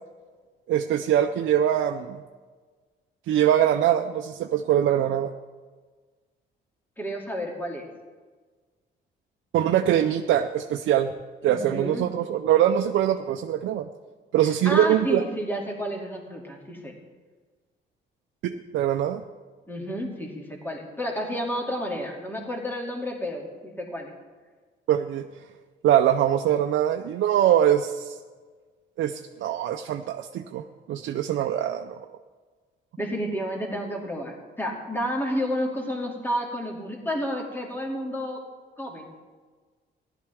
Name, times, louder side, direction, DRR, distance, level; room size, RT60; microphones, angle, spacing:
voice 1, 0.7-2.2 3.3-5.3 9.5-11.1 11.4-13.9 14.3-15.2 18.4-19.2 24.9-25.3 25.8-28.2 29.0-30.6 30.9-32.0, right 11 dB, 75° right, 6 dB, 0.6 m, -23 dB
voice 2, 7.0-7.9 11.4-12.0 14.4-16.9 19.7-24.1 33.0-38.4 38.8-39.1, equal, 10° left, -1 dB, 2.4 m, -31 dB
15.5 x 11.5 x 3.5 m, 1.4 s
cardioid pair, 90°, 20 cm